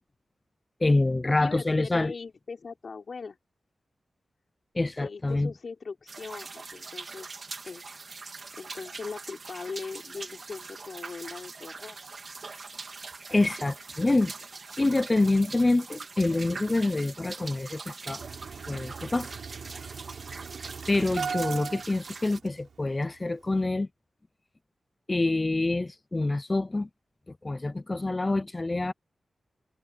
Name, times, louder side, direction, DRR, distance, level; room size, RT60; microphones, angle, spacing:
voice 1, 0.8-2.1 4.7-5.5 13.3-14.3 14.8-18.2 18.7-19.3 20.9-23.9 25.1-26.9 27.4-28.9, left 2 dB, 25° left, 0.5 m, -26 dB
voice 2, 1.4-3.4 5.0-7.3 7.6-7.8 8.3-12.0, left 4 dB, 55° left, 4.6 m, -40 dB
sound 1, 6.1-22.4, right 4 dB, 50° right, 2.1 m, -42 dB
Engine starting, 18.2-22.7 23.0-23.1 23.4-23.6, right 6 dB, 80° right, 4.7 m, -38 dB
wide cardioid pair, 105°, 0 cm